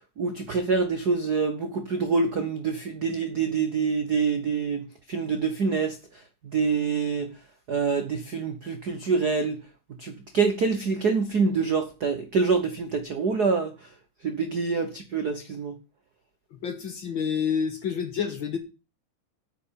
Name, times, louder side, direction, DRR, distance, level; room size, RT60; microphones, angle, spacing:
voice 1, 0.2-6.0 6.4-7.3 7.7-9.6 10.0-13.9 14.2-15.7, right 5 dB, 75° right, 0.9 m, -26 dB
voice 2, 16.5-18.6, left 7 dB, 50° left, 1.6 m, -28 dB
9.1 x 6.8 x 8.5 m
omnidirectional pair, 3.6 m